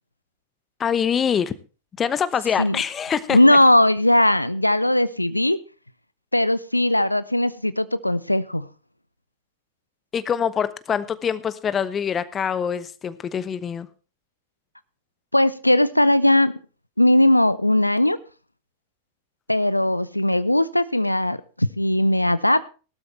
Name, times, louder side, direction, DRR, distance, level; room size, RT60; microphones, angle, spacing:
voice 1, 0.8-1.5 2.0-3.6 10.1-13.9, left 7 dB, 25° left, 16 dB, 1.0 m, -24 dB
voice 2, 3.3-5.6 6.3-8.7 15.3-16.5 17.0-18.2 19.5-22.7, left 1 dB, 85° left, 17 dB, 0.5 m, -19 dB
18.0 x 12.5 x 3.3 m, 0.35 s
figure-of-eight pair, 90°, 0 cm